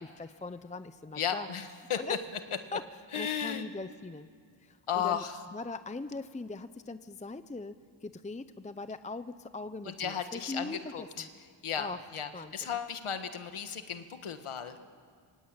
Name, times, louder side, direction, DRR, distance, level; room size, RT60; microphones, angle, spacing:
voice 1, 0.0-1.5 1.9-2.2 2.7-2.8 3.1-4.3 4.6-5.2 5.5-11.2 11.8-12.0 12.3-12.8, left 3 dB, 15° left, 12 dB, 0.7 m, -41 dB
voice 2, 1.1-2.0 3.1-3.7 4.9-5.3 9.8-11.3 11.6-14.8, left 8 dB, 85° left, 8 dB, 1.7 m, -35 dB
26.0 x 24.5 x 9.0 m, 2.1 s
wide cardioid pair, 100°, 49 cm